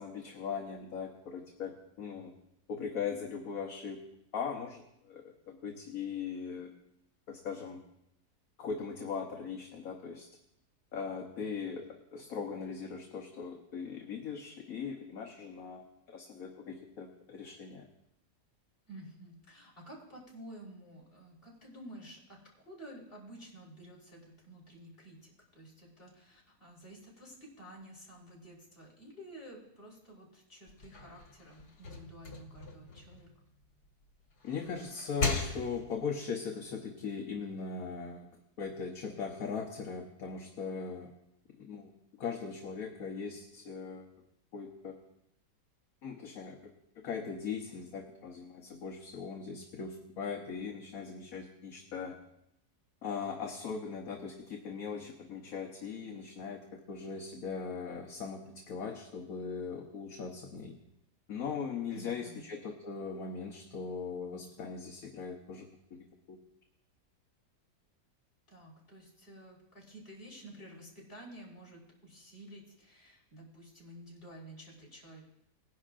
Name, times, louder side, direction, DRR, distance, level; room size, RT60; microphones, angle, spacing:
voice 1, 0.0-2.3 2.7-4.0 4.3-6.7 7.3-7.8 8.6-10.3 10.9-17.9 34.4-38.3 38.6-41.1 41.6-41.9 42.2-44.1 44.5-44.9 46.0-46.6 47.0-52.2 53.0-60.8 61.3-66.4, left 5 dB, 65° left, 2 dB, 1.4 m, -39 dB
voice 2, 18.9-33.3 61.9-62.4 68.5-75.2, right 1 dB, 35° left, -4 dB, 4.3 m, -51 dB
sound 1, 30.7-33.9 34.3-36.1, left 3 dB, 80° left, 2.3 m, -38 dB
19.5 x 11.0 x 2.5 m, 0.80 s
omnidirectional pair, 1.7 m